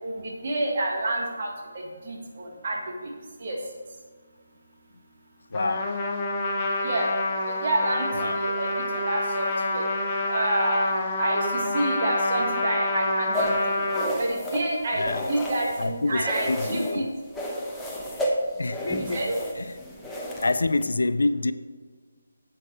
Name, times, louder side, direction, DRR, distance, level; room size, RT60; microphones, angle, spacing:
voice 1, 0.0-3.1 3.4-3.6 6.8-7.1 7.5-9.8 10.3-10.9 11.2-13.8 14.2-17.1 18.8-19.4, right 1 dB, 45° right, 0 dB, 1.9 m, -29 dB
voice 2, 5.5-5.9 8.2-8.4 15.0-15.3 15.8-17.0 18.6-19.2 20.4-21.5, left 2 dB, 80° left, 13 dB, 0.5 m, -26 dB
Trumpet, 5.5-14.1, left 2 dB, 25° left, 1.2 m, -27 dB
sound 1, 13.3-15.9 16.2-17.0 17.3-20.8, left 1 dB, 5° left, 1.0 m, -31 dB
8.9 x 7.8 x 4.6 m, 1.5 s
figure-of-eight pair, 160°, 0 cm